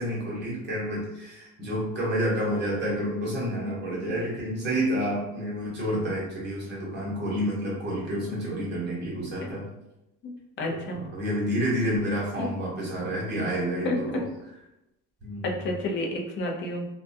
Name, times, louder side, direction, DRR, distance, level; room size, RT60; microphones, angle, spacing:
voice 1, 0.0-9.6 10.7-14.3 15.2-15.7, equal, 30° right, -5 dB, 0.9 m, -29 dB
voice 2, 10.6-11.0 12.4-12.5 13.8-14.0 15.4-16.9, left 2 dB, 35° left, 1 dB, 0.4 m, -30 dB
2.3 x 2.2 x 2.6 m, 0.89 s
cardioid pair, 155°, 32 cm